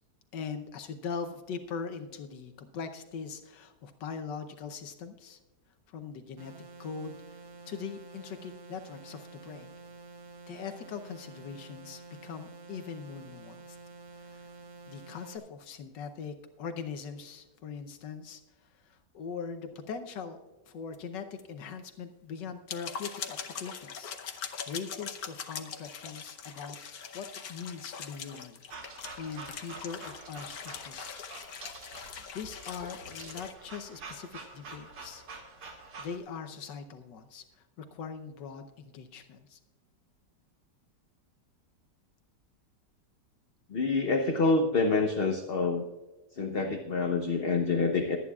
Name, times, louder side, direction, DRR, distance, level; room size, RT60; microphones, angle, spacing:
voice 1, 0.3-5.4 5.9-6.5 6.8-7.4 7.7-9.7 10.5-13.8 14.1-14.5 14.9-20.4 20.7-31.2 32.3-35.5 36.0-39.6, left 6 dB, 80° left, 8 dB, 1.5 m, -41 dB
sound 1, 6.4-15.4, right 3 dB, 65° right, 1.6 m, -49 dB
sound 2, 20.9-21.0 21.4-21.5 21.8-21.9 22.5-33.5, left 7 dB, 60° left, 1.3 m, -42 dB
sound 3, 28.7-36.2, right 3 dB, 80° right, 2.5 m, -47 dB
voice 2, 43.7-45.8 46.3-48.2, left 3 dB, 45° left, 4 dB, 0.8 m, -27 dB
22.5 x 9.5 x 2.4 m, 1.2 s
omnidirectional pair, 1.9 m